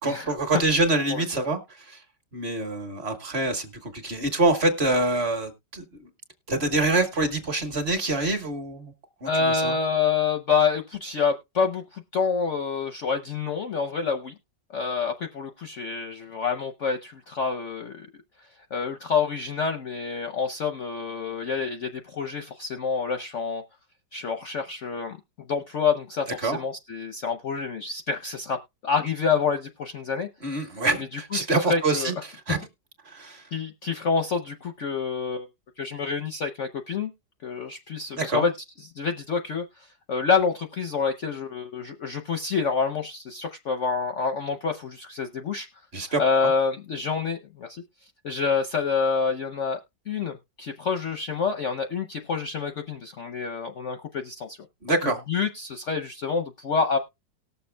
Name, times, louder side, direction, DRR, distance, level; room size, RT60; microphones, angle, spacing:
voice 1, 0.0-2.0 2.3-6.1 6.5-8.9 9.2-9.7 26.4-26.6 30.4-32.6 33.0-33.5 38.1-38.4 45.9-46.2 54.8-55.2, right 2 dB, 40° right, 1.4 m, -26 dB
voice 2, 1.1-1.5 9.2-14.3 14.7-18.1 18.7-23.6 24.1-25.2 25.5-30.3 31.3-32.1 33.5-35.5 35.8-37.1 37.4-38.5 39.0-39.6 40.1-45.7 46.2-47.8 48.2-49.8 50.1-54.6 55.0-57.0, left 5 dB, 60° left, 0.8 m, -27 dB
18.5 x 6.9 x 2.2 m
omnidirectional pair, 2.0 m